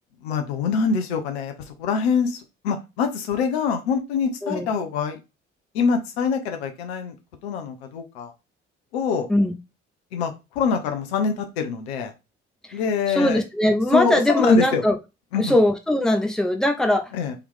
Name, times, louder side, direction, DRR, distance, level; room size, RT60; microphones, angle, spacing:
voice 1, 0.2-5.2 5.7-7.2 7.4-8.3 8.9-9.3 10.1-12.1 12.7-13.4 13.9-14.8 15.3-15.6 17.1-17.4, left 5 dB, 75° left, 5 dB, 0.8 m, -25 dB
voice 2, 13.1-14.9 15.4-17.1, left 1 dB, ahead, 4 dB, 0.9 m, -20 dB
3.5 x 2.9 x 3.6 m, 0.25 s
figure-of-eight pair, 50°, 32 cm